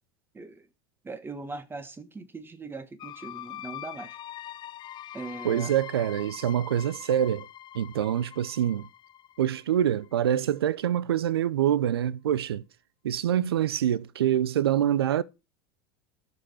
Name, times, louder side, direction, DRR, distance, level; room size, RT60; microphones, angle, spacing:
voice 1, 0.3-0.7 1.0-4.2 5.1-5.7, right 3 dB, 15° right, 1.4 m, -40 dB
sound 1, 3.0-10.6, left 12 dB, 35° left, 0.5 m, -44 dB
voice 2, 5.4-7.5 7.7-8.9 9.4-12.6 13.0-15.2, right 10 dB, 80° right, 0.6 m, -25 dB
11.0 x 5.5 x 5.6 m
hypercardioid pair, 85°, 13 cm